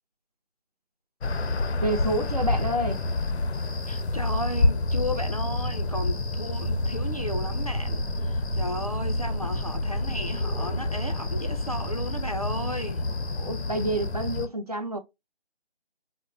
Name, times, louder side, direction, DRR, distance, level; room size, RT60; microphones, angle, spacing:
sound 1, 1.2-14.5, left 2 dB, 80° left, 0.6 m, -28 dB
voice 1, 1.8-3.0 13.4-15.0, right 1 dB, 40° right, 0.5 m, -28 dB
voice 2, 3.9-13.0, equal, 35° left, 0.4 m, -34 dB
sound 2, 6.6-12.7, right 2 dB, 20° right, 0.9 m, -36 dB
4.4 x 2.0 x 2.3 m
figure-of-eight pair, 165°, 32 cm